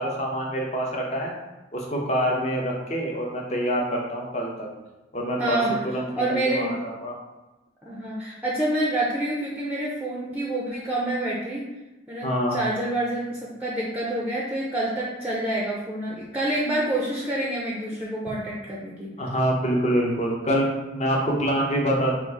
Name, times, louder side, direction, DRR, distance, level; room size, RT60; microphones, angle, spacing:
voice 1, 0.0-1.3 1.7-4.7 5.1-7.1 12.2-12.6 19.2-22.1, equal, 35° left, -1 dB, 0.6 m, -26 dB
voice 2, 5.4-5.8 6.2-6.8 7.8-11.7 12.1-19.1, right 1 dB, 10° right, -4 dB, 0.4 m, -27 dB
4.7 x 2.4 x 3.3 m, 1.1 s
head